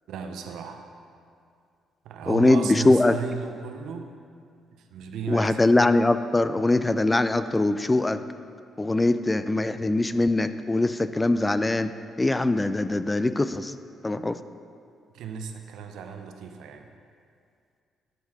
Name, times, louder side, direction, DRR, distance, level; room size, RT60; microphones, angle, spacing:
voice 1, 0.1-0.8 2.0-4.2 4.7-5.6 15.1-16.9, right 6 dB, 85° right, 5 dB, 0.6 m, -35 dB
voice 2, 2.3-3.2 5.3-8.2 8.8-11.9 12.2-13.8 14.0-14.4, left 2 dB, 15° left, 12 dB, 0.3 m, -22 dB
10.5 x 4.5 x 4.8 m, 2.3 s
cardioid pair, 90°, 0 cm